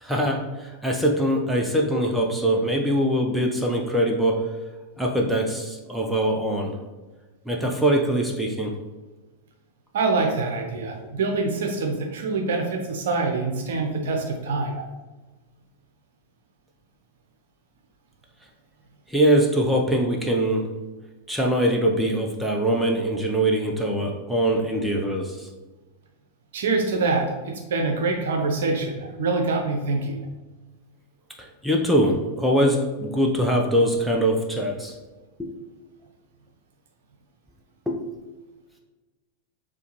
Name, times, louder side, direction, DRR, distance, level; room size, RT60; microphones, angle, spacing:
voice 1, 0.0-4.4 5.0-6.7 7.5-8.7 19.1-20.6 21.3-25.5 31.6-34.9 35.4-35.6 37.9-38.1, right 1 dB, ahead, 0 dB, 0.6 m, -23 dB
voice 2, 9.9-14.9 26.5-30.3, right 3 dB, 60° right, 2 dB, 0.8 m, -25 dB
6.8 x 2.3 x 3.0 m, 1.2 s
figure-of-eight pair, 90°, 0 cm